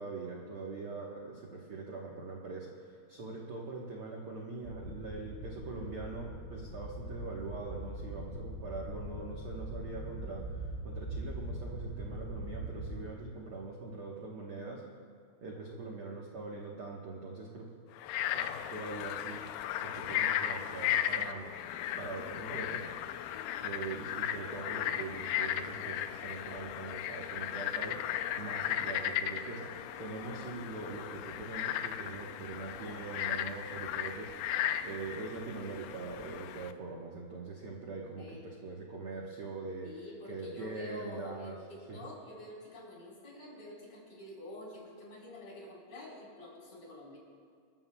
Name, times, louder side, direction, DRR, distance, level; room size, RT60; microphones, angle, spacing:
voice 1, 0.0-14.8 15.4-17.7 18.3-19.4 19.8-21.5 22.0-22.9 23.6-39.9 40.3-41.6 41.9-42.1, right 3 dB, 75° right, -2 dB, 1.2 m, -42 dB
sound 1, 4.6-13.0, right 1 dB, 10° left, 3.5 m, -42 dB
Frog, 18.0-36.7, left 11 dB, 85° left, 2.5 m, -36 dB
voice 2, 23.3-23.7 38.2-38.4 39.8-47.2, left 1 dB, 40° left, -5 dB, 5.2 m, -48 dB
27.5 x 13.5 x 2.3 m, 2.3 s
omnidirectional pair, 4.5 m